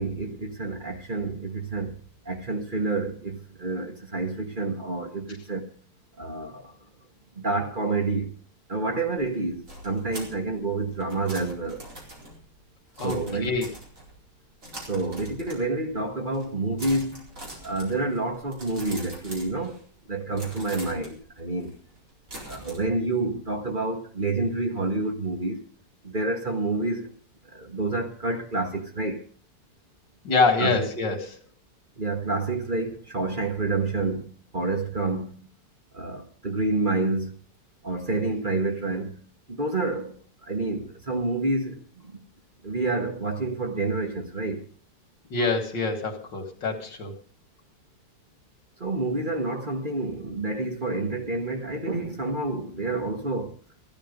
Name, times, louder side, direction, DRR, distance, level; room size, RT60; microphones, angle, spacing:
voice 1, 0.0-2.0 2.2-5.7 6.2-6.8 7.4-8.3 8.7-11.8 13.0-13.6 14.9-17.2 17.6-19.8 20.1-21.8 22.5-25.6 26.0-27.1 27.5-29.2 30.6-30.7 32.0-35.5 35.9-37.4 37.8-39.2 39.5-40.2 40.5-42.2 42.6-44.6 48.8-53.6, right 3 dB, 30° right, 1.6 m, -28 dB
sound 1, 9.2-14.3 14.6-15.9 16.2-16.5 16.8-20.0 20.3-22.8, right 1 dB, 45° right, 4.9 m, -43 dB
voice 2, 13.0-13.7 30.2-31.4 45.3-47.1, left 4 dB, 85° left, 2.8 m, -25 dB
15.0 x 12.5 x 5.3 m
omnidirectional pair, 1.9 m